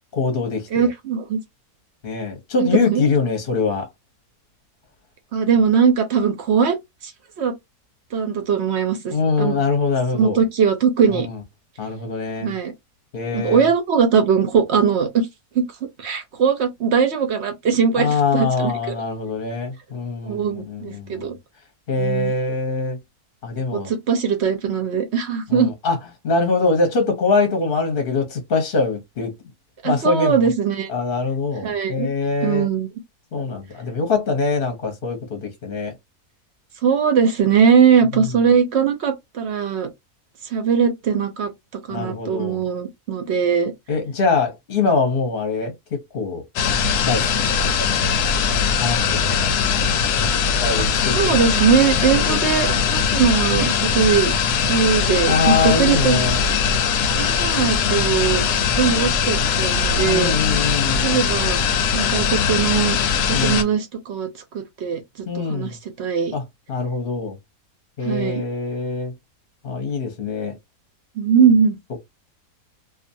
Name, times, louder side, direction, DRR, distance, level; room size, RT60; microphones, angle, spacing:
voice 1, 0.0-0.9 2.0-3.9 9.1-10.4 11.1-11.4 11.8-12.5 13.1-13.7 17.9-21.3 21.9-23.0 23.4-23.9 25.5-26.0 26.2-29.3 29.8-30.4 30.9-32.7 33.3-35.9 38.3-38.4 41.9-42.6 43.9-46.4 47.0-48.2 48.8-49.7 50.6-51.5 52.0-52.5 55.2-56.4 60.1-61.2 63.3-63.7 65.3-65.8 66.3-66.4 66.7-67.4 68.0-69.1 69.6-70.6, left 4 dB, 45° left, 0.8 m, -23 dB
voice 2, 0.7-1.4 2.6-3.0 5.3-6.8 7.0-7.1 7.4-7.5 8.1-9.6 10.1-11.3 12.4-12.7 13.3-15.3 15.5-15.7 16.0-18.9 20.2-21.3 22.0-22.3 23.7-25.7 29.8-30.9 31.6-32.1 32.4-32.9 36.8-39.9 40.5-41.5 41.9-43.7 50.8-56.2 57.1-58.4 58.7-60.4 61.0-61.6 61.9-63.0 63.3-64.3 64.5-65.0 65.5-66.3 68.0-68.4 71.2-71.8, right 6 dB, 60° right, 0.7 m, -20 dB
sound 1, 46.6-63.6, left 6 dB, 85° left, 1.1 m, -20 dB
2.5 x 2.4 x 2.6 m
omnidirectional pair, 1.6 m